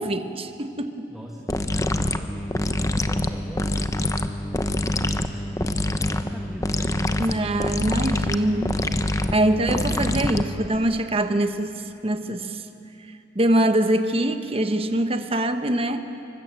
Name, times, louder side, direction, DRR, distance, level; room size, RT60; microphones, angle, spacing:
voice 1, 0.0-1.1 7.2-11.7 12.0-12.6 13.3-16.0, right 1 dB, 30° right, 8 dB, 1.2 m, -24 dB
voice 2, 1.1-7.3, equal, ahead, -1 dB, 1.8 m, -41 dB
sound 1, 1.5-10.8, left 1 dB, 20° left, 0.9 m, -25 dB
26.5 x 24.0 x 7.7 m, 2.8 s
head